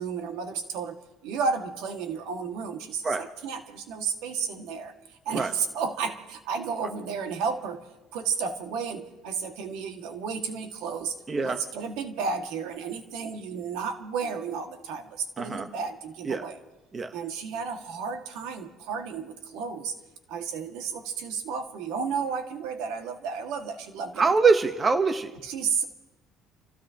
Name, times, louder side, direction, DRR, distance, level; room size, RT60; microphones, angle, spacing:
voice 1, 0.0-7.8 8.1-11.2 11.4-16.6 17.1-19.9 20.3-24.3 25.4-25.8, right 5 dB, 85° right, 4 dB, 1.9 m, -32 dB
voice 2, 11.3-11.6 15.4-15.7 16.3-16.4 16.9-17.1 24.2-25.3, right 4 dB, 25° right, 8 dB, 1.0 m, -24 dB
29.5 x 16.0 x 2.9 m, 1.0 s
cardioid pair, 145°, 0 cm